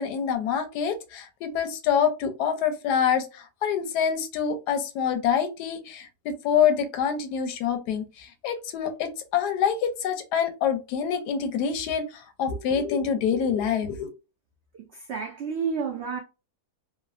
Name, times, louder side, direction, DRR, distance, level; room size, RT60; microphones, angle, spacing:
voice 1, 0.0-3.2 3.6-8.0 8.4-12.0 12.4-14.1, left 7 dB, 90° left, 1.2 m, -26 dB
voice 2, 14.9-16.2, right 6 dB, 80° right, 0.5 m, -30 dB
3.1 x 2.0 x 2.4 m
omnidirectional pair, 1.7 m